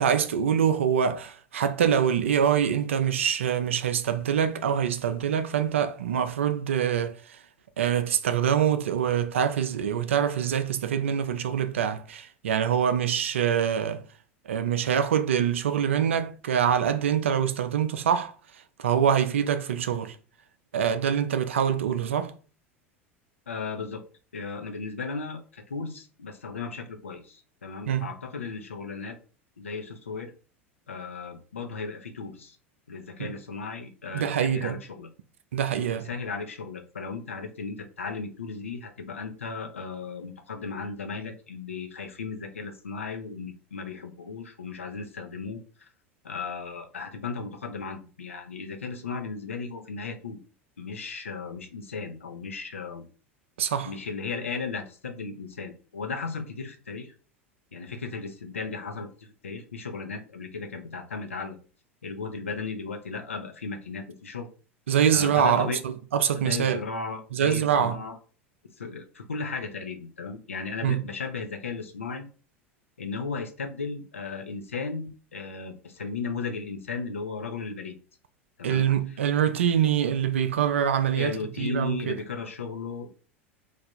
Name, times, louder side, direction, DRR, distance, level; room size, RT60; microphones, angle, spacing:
voice 1, 0.0-7.4 7.8-14.0 14.5-18.3 18.8-20.2 20.7-22.3 27.9-28.1 33.2-33.3 34.1-34.8 35.5-36.1 53.6-53.9 64.9-66.8 67.3-68.0 70.8-71.0 78.6-82.2, right 8 dB, 70° right, 0.4 m, -25 dB
voice 2, 23.5-24.0 24.3-29.2 29.6-30.3 30.9-32.6 32.9-35.1 36.0-45.9 46.2-50.4 50.8-53.0 53.8-57.1 57.7-61.6 62.0-64.5 65.1-65.8 66.3-68.2 68.8-72.2 73.0-78.0 78.6-78.8 79.1-79.2 81.2-83.1, left 4 dB, 75° left, 0.6 m, -35 dB
3.3 x 2.5 x 4.2 m
figure-of-eight pair, 80°, 7 cm